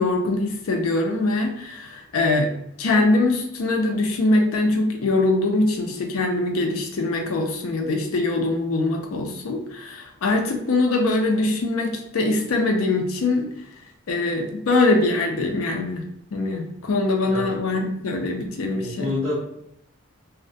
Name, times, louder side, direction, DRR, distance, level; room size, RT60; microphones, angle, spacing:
voice 1, 0.0-2.5 2.8-13.5 14.1-16.0 16.3-19.1, left 2 dB, 90° left, 4 dB, 0.5 m, -22 dB
voice 2, 18.7-19.5, left 2 dB, 20° right, -11 dB, 0.7 m, -28 dB
2.3 x 2.1 x 2.6 m, 0.73 s
head